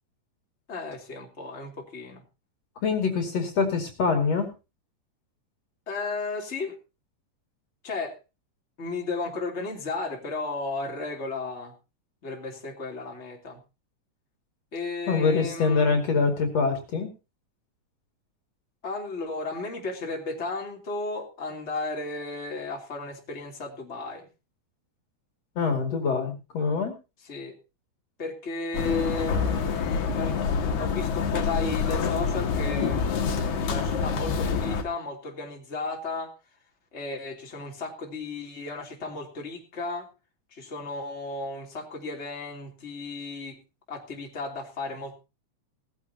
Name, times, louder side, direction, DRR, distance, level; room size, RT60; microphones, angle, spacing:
voice 1, 0.7-2.2 5.9-6.7 7.8-8.2 8.8-11.7 12.2-13.6 14.7-16.0 18.8-24.3 27.3-27.5 28.2-30.4 30.8-36.3 36.9-40.1 40.5-43.5 43.9-45.2, left 3 dB, 20° left, 0 dB, 3.2 m, -34 dB
voice 2, 2.8-4.5 15.1-17.1 25.6-26.9, left 4 dB, 55° left, 4 dB, 3.5 m, -24 dB
sound 1, 28.7-34.8, left 5 dB, 75° left, 3.1 m, -26 dB
18.5 x 14.5 x 2.8 m, 0.30 s
omnidirectional pair, 3.5 m